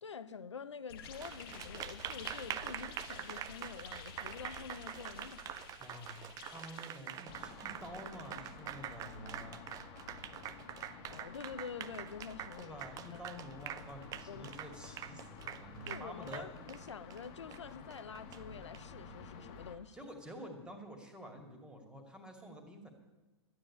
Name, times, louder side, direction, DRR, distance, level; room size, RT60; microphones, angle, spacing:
voice 1, 0.0-5.6 11.1-12.8 13.1-13.2 14.3-14.5 15.9-20.0, left 6 dB, 85° left, 0.8 m, -47 dB
sound 1, 0.9-7.9, left 6 dB, 55° left, 1.3 m, -51 dB
Applause, 1.0-18.8, right 11 dB, 25° right, 0.5 m, -45 dB
voice 2, 5.8-9.7 12.6-16.5 19.9-22.9, equal, 5° right, 2.4 m, -49 dB
sound 2, 7.3-19.8, left 5 dB, 40° left, 1.7 m, -52 dB
12.5 x 9.4 x 8.6 m
hypercardioid pair, 115°, 15 cm